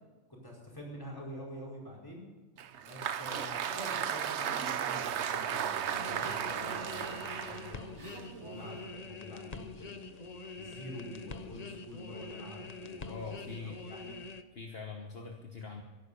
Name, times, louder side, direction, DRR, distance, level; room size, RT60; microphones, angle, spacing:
voice 1, 0.4-2.2 2.8-10.2 10.6-14.2, left 1 dB, 20° left, -2 dB, 5.0 m, -46 dB
Applause, 2.6-8.9, right 9 dB, 70° right, 1.0 m, -35 dB
sound 1, 5.9-14.4, left 3 dB, 40° left, 0.9 m, -45 dB
voice 2, 13.1-13.8 14.5-15.8, left 4 dB, 55° left, 2 dB, 1.5 m, -43 dB
15.5 x 11.5 x 6.9 m, 1.3 s
omnidirectional pair, 1.2 m